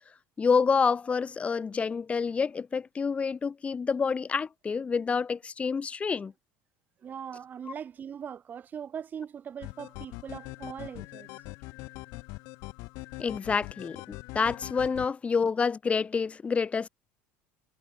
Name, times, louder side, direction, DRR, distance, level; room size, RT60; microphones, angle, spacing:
voice 1, 0.4-6.3 13.2-16.9, left 5 dB, 20° left, 4.5 m, -28 dB
voice 2, 7.0-11.4, right 8 dB, 30° right, 3.7 m, -40 dB
sound 1, 9.6-15.1, left 26 dB, 65° left, 2.9 m, -42 dB
supercardioid pair, 120°, 6 cm